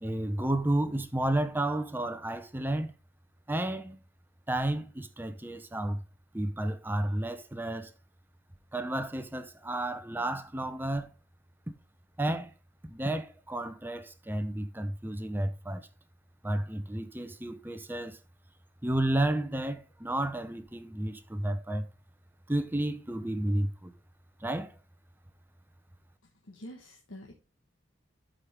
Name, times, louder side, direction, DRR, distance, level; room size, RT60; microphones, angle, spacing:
voice 1, 0.0-2.9 3.5-4.0 4.5-6.0 6.3-7.9 8.7-11.1 12.2-12.5 12.8-15.9 16.4-18.2 18.8-21.9 22.5-23.9 24.4-24.8, right 1 dB, 10° right, 0.6 m, -31 dB
voice 2, 26.2-27.3, equal, 85° left, 1.4 m, -47 dB
12.5 x 5.1 x 3.5 m
head